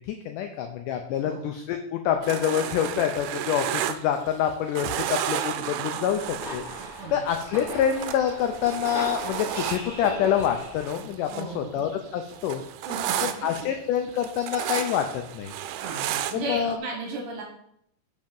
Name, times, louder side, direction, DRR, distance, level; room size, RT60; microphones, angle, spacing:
voice 1, 0.1-12.6 13.4-15.5 16.3-16.8, left 9 dB, 85° left, 5 dB, 1.8 m, -27 dB
sound 1, 2.2-4.5 4.8-11.5 11.8-16.7, right 10 dB, 85° right, 2.5 m, -33 dB
sound 2, 6.0-11.1, left 1 dB, ahead, 2.6 m, -39 dB
voice 2, 11.3-11.7 12.9-13.2 15.8-17.4, right 2 dB, 65° right, 1 dB, 2.7 m, -34 dB
5.9 x 5.3 x 5.2 m, 0.73 s
omnidirectional pair, 4.4 m